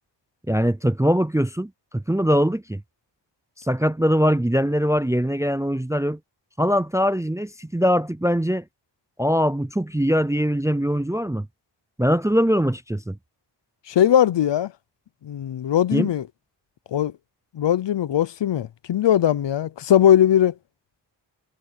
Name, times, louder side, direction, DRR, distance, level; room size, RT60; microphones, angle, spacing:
voice 1, 0.5-2.8 3.6-6.2 6.6-8.6 9.2-11.5 12.0-13.2 15.9-16.1, equal, 5° right, 0.4 m, -22 dB
voice 2, 13.9-14.7 15.2-16.2 16.9-17.1 17.5-20.5, left 10 dB, 70° left, 0.7 m, -19 dB
wide cardioid pair, 150°, 44 cm